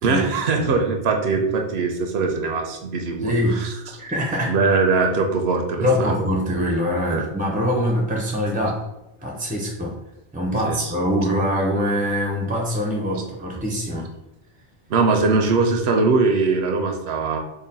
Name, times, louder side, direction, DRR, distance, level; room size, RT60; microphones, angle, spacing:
voice 1, 0.0-3.7 4.5-6.3 7.1-7.2 10.6-10.9 14.9-17.4, right 4 dB, 80° right, 4 dB, 0.8 m, -21 dB
voice 2, 3.2-3.6 4.0-4.6 5.8-8.9 9.2-10.0 10.3-14.1, equal, 15° right, -1 dB, 0.3 m, -23 dB
3.8 x 2.1 x 4.0 m, 0.96 s
omnidirectional pair, 1.1 m